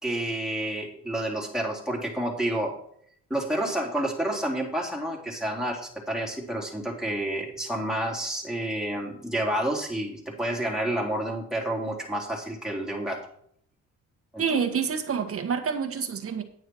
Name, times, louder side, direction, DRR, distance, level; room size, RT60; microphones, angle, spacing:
voice 1, 0.0-2.7 3.3-13.2 14.3-14.4, right 1 dB, ahead, -1 dB, 3.4 m, -29 dB
voice 2, 14.4-16.4, right 6 dB, 50° right, 6 dB, 1.7 m, -27 dB
9.6 x 9.3 x 4.7 m, 0.65 s
cardioid pair, 90°, 30 cm